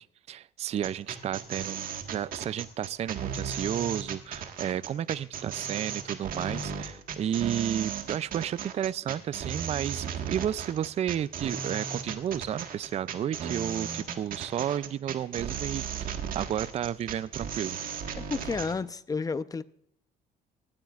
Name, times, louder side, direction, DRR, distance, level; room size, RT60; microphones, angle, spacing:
voice 1, 0.0-17.8, right 10 dB, 40° right, 0.4 m, -32 dB
sound 1, 0.8-18.7, right 7 dB, 55° right, 1.6 m, -35 dB
voice 2, 18.2-19.6, left 4 dB, 20° left, 0.6 m, -31 dB
18.5 x 13.0 x 2.4 m
cardioid pair, 110°, 17 cm